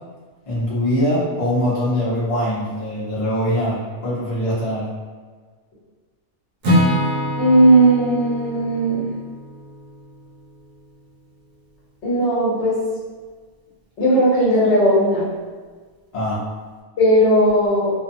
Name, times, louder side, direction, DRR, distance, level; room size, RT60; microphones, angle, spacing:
voice 1, 0.5-4.9 16.1-16.4, equal, 30° left, -9 dB, 0.7 m, -22 dB
Acoustic guitar / Strum, 6.6-10.7, equal, 60° right, 0.6 m, -24 dB
voice 2, 7.4-9.1 12.0-12.8 14.0-15.3 17.0-17.9, right 1 dB, 55° left, -8 dB, 1.1 m, -16 dB
2.6 x 2.2 x 2.6 m, 1.5 s
omnidirectional pair, 1.4 m